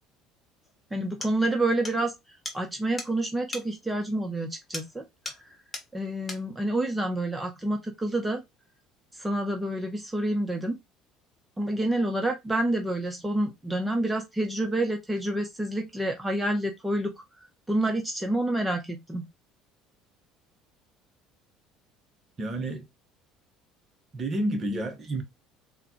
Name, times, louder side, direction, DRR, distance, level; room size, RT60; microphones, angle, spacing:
sound 1, 0.6-0.7 1.2-1.4 1.8-2.0 2.4-2.6 3.0-3.1 3.5-3.7 4.7-5.0 5.2-5.5 5.7-5.9 6.3-6.5, left 2 dB, 20° left, 1.2 m, -37 dB
voice 1, 0.9-2.1 2.5-5.0 5.9-8.4 9.2-10.8 11.6-17.1 17.7-19.3, right 1 dB, 10° right, 0.8 m, -28 dB
voice 2, 22.4-22.9 24.1-25.2, right 1 dB, 35° right, 1.0 m, -30 dB
3.8 x 2.3 x 2.9 m
figure-of-eight pair, 60°, 0 cm